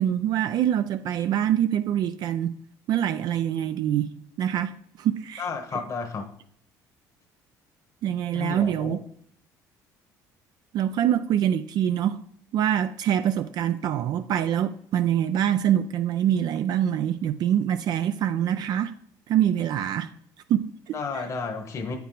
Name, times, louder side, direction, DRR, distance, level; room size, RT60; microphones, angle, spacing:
voice 1, 0.0-2.6 2.9-5.8 8.0-9.0 10.7-12.2 12.5-18.9 19.3-20.1 20.5-21.3, right 10 dB, 60° right, 0.4 m, -25 dB
voice 2, 5.4-6.3 8.3-9.0 20.9-22.0, left 5 dB, 40° left, 1.1 m, -32 dB
8.2 x 4.6 x 3.9 m
supercardioid pair, 85°, 8 cm